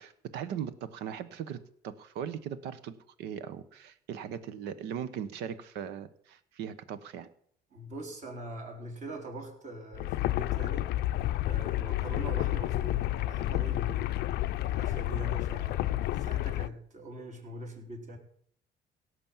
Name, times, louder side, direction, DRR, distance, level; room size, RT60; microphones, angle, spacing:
voice 1, 0.0-1.6 1.8-7.3, right 8 dB, 90° right, 14 dB, 1.1 m, -39 dB
voice 2, 7.7-10.9 11.4-14.3 14.7-18.2, right 1 dB, 45° right, 1 dB, 4.1 m, -43 dB
sound 1, 9.9-16.7, left 15 dB, 75° left, 0.5 m, -30 dB
17.0 x 6.4 x 7.3 m, 0.65 s
cardioid pair, 110°, 17 cm